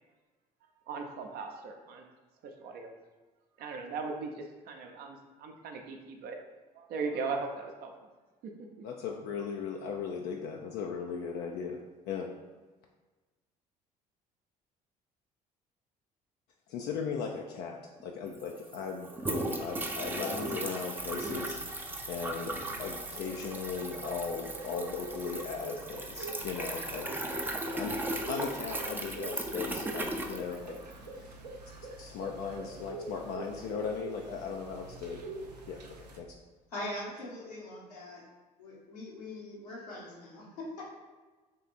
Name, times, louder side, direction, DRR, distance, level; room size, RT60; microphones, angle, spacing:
voice 1, 0.9-2.1 2.4-2.9 3.6-6.4 6.7-8.1 8.8-8.9, right 4 dB, 50° right, 3 dB, 0.7 m, -38 dB
voice 2, 8.8-11.8 12.1-12.3 16.7-21.6 22.0-22.5 22.8-27.1 27.7-27.9 28.3-30.8 31.2-31.4 32.0-36.3, left 6 dB, 55° left, 1 dB, 0.5 m, -37 dB
sound 1, 18.0-18.1 18.3-31.1, right 1 dB, 10° right, 0.5 m, -37 dB
sound 2, 20.9-36.2, right 2 dB, 85° right, 0.4 m, -45 dB
voice 3, 36.7-38.2 38.6-40.9, left 1 dB, 80° left, -6 dB, 1.2 m, -42 dB
3.5 x 3.3 x 4.1 m, 1.3 s
figure-of-eight pair, 55°, 20 cm